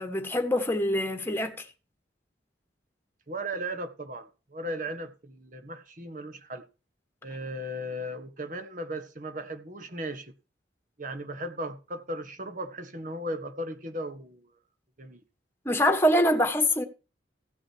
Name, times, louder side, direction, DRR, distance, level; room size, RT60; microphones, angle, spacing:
voice 1, 0.0-1.6 15.7-16.8, equal, 10° left, 1.6 m, -24 dB
voice 2, 3.3-6.7 7.2-10.3 11.0-14.5 15.0-15.2, right 1 dB, 45° right, 1.6 m, -36 dB
16.0 x 6.3 x 4.6 m
head